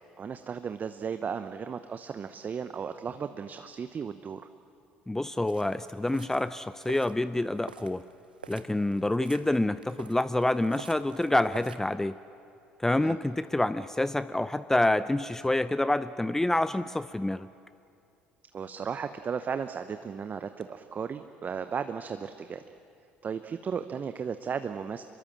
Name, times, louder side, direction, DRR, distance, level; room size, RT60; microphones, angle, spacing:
voice 1, 0.2-4.4 12.9-13.2 18.5-22.6 23.2-25.0, right 6 dB, 35° right, 10 dB, 0.9 m, -35 dB
voice 2, 5.1-8.0 8.5-12.2 12.8-17.5, left 1 dB, 10° left, 15 dB, 0.5 m, -27 dB
sound 1, 5.5-11.8, right 6 dB, 90° right, 0.8 m, -49 dB
26.0 x 22.5 x 7.5 m, 2.5 s
hypercardioid pair, 60°, 5 cm